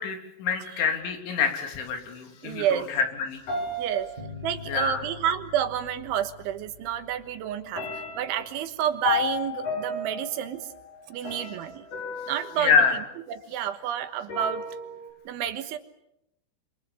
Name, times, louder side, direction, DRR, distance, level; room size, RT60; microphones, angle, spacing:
voice 1, 0.0-3.4 4.7-5.0 12.6-13.0, left 5 dB, 70° left, 4 dB, 5.5 m, -26 dB
voice 2, 2.4-2.9 3.8-4.1 4.4-7.9 8.2-10.7 11.1-11.9 12.3-12.7 13.3-14.6 15.3-15.8, right 10 dB, 75° right, 9 dB, 3.6 m, -29 dB
sound 1, 3.5-4.9 6.1-6.2 6.7-7.2 7.7-13.7 14.3-15.1, left 4 dB, 45° left, 6.5 m, -34 dB
sound 2, 4.2-9.3, left 5 dB, 25° right, 0.9 m, -46 dB
27.5 x 27.0 x 7.1 m, 0.81 s
omnidirectional pair, 5.7 m